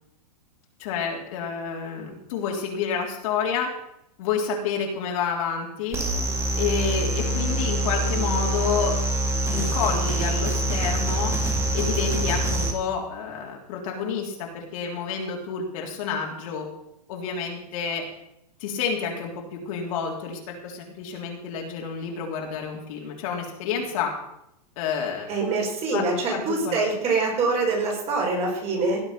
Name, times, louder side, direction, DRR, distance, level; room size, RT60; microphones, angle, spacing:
voice 1, 0.8-3.7 4.2-6.0 6.6-9.0 9.5-11.3 11.7-16.7 17.1-18.0 18.6-24.1 24.8-25.4 25.9-26.0 26.3-26.8, left 6 dB, 55° left, 0 dB, 3.4 m, -29 dB
sound 1, 5.9-12.7, right 1 dB, 15° right, 2.2 m, -25 dB
voice 2, 25.3-29.0, right 3 dB, 30° right, -1 dB, 5.9 m, -25 dB
17.5 x 8.0 x 5.8 m, 0.80 s
hypercardioid pair, 140°, 21 cm